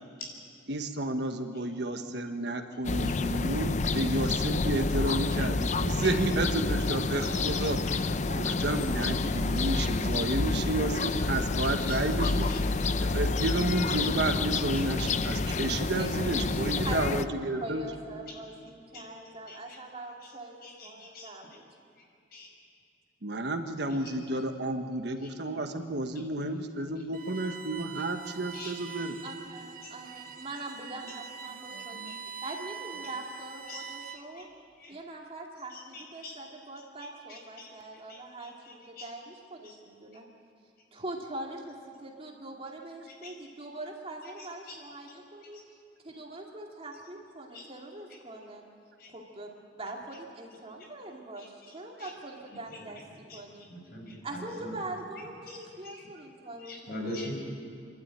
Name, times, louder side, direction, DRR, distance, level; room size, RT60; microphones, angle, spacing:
voice 1, 0.7-12.5 13.0-17.8 23.2-29.2 31.7-32.2, right 2 dB, 65° right, 6 dB, 1.4 m, -31 dB
sound 1, 2.8-17.2, left 3 dB, 40° left, 0.6 m, -29 dB
voice 2, 9.2-9.6 11.9-12.6 13.6-13.8 14.7-14.9 18.9-19.0 19.5-19.8 20.6-21.3 22.3-22.5 28.5-28.7 29.8-29.9 32.1-32.2 33.7-33.8 34.4-34.5 34.8-35.0 35.7-36.3 37.3-37.7 38.1-38.5 39.0-39.1 39.6-39.7 43.2-43.3 44.7-44.8 45.5-45.6 47.5-47.6 49.0-49.1 51.4-51.5 52.0-52.1 53.3-53.4 53.7-54.8 55.5-55.6 55.8-56.0 56.6-57.4, left 1 dB, 60° left, 0 dB, 5.5 m, -43 dB
voice 3, 17.6-21.6 29.2-34.5 34.9-40.2 40.9-45.6 46.0-48.6 49.1-49.5 49.8-53.0 53.3-53.6 54.2-57.3, right 2 dB, 35° right, 0 dB, 2.5 m, -42 dB
Bowed string instrument, 27.1-34.4, right 6 dB, 50° right, 1.2 m, -44 dB
27.5 x 12.5 x 9.0 m, 2.4 s
head